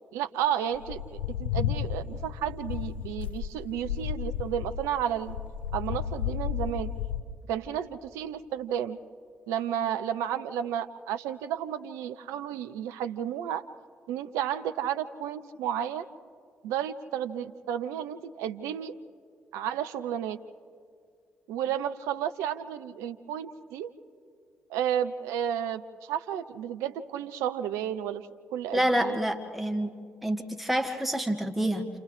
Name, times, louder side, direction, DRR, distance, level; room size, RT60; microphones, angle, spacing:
voice 1, 0.1-1.0 1.3-5.4 5.7-6.9 7.5-9.0 9.5-13.6 14.1-16.1 16.6-18.9 19.5-20.4 21.5-23.9 24.7-28.2 28.5-29.2, right 10 dB, 70° right, 10 dB, 0.7 m, -32 dB
sound 1, 0.7-7.2, left 9 dB, 85° left, 0.5 m, -33 dB
voice 2, 28.7-29.9 30.2-31.9, right 1 dB, 5° right, 4 dB, 1.8 m, -27 dB
29.5 x 29.0 x 3.3 m, 2.2 s
figure-of-eight pair, 40°, 5 cm